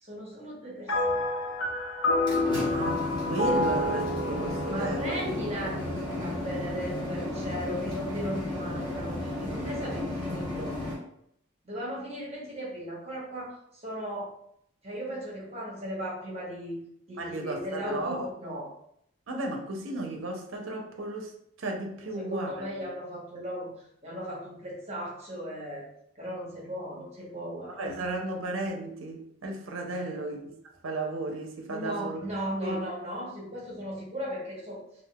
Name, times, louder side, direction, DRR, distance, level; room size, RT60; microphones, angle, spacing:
voice 1, 0.0-1.7 2.5-2.8 4.7-10.7 11.6-14.3 14.8-16.8 17.1-18.7 22.2-23.7 24.0-25.9 26.2-28.1 29.8-30.2 31.7-34.8, equal, 30° right, -4 dB, 1.0 m, -37 dB
sound 1, 0.9-6.4, left 1 dB, 85° left, 0.5 m, -29 dB
sound 2, 2.0-10.9, left 1 dB, 20° left, 0.8 m, -33 dB
voice 2, 2.7-5.1 17.2-18.3 19.3-21.3 21.6-22.7 27.7-30.5 30.8-32.2 32.6-32.8, right 2 dB, 70° right, 2 dB, 0.5 m, -34 dB
3.6 x 2.3 x 2.2 m, 0.71 s
head